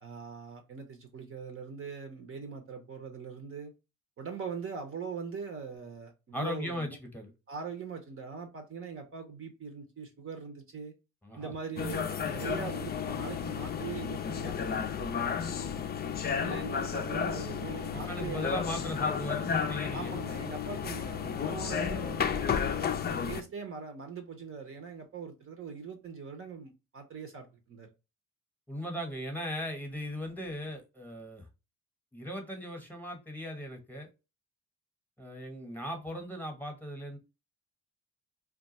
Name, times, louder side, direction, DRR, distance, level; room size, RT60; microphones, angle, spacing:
voice 1, 0.0-3.7 4.2-7.0 7.5-10.9 11.3-15.3 16.4-18.5 19.9-27.9, right 5 dB, 45° right, 0.7 m, -42 dB
voice 2, 6.3-7.3 11.2-11.5 18.1-20.1 28.7-31.5 32.1-34.1 35.2-37.2, equal, 5° left, 1.0 m, -38 dB
sound 1, 11.8-23.4, left 7 dB, 35° left, 0.4 m, -32 dB
2.3 x 2.3 x 3.9 m
cardioid pair, 90°, 30 cm